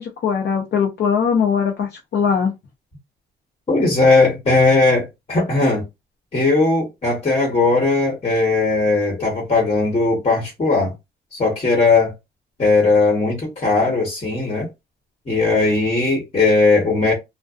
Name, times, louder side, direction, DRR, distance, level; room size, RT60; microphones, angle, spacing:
voice 1, 0.0-2.5, left 6 dB, 60° left, 0.6 m, -20 dB
voice 2, 3.7-5.9 6.3-10.9 11.3-12.1 12.6-14.7 15.3-17.1, left 3 dB, 30° left, 1.1 m, -18 dB
2.5 x 2.1 x 2.4 m
cardioid pair, 90°, 20 cm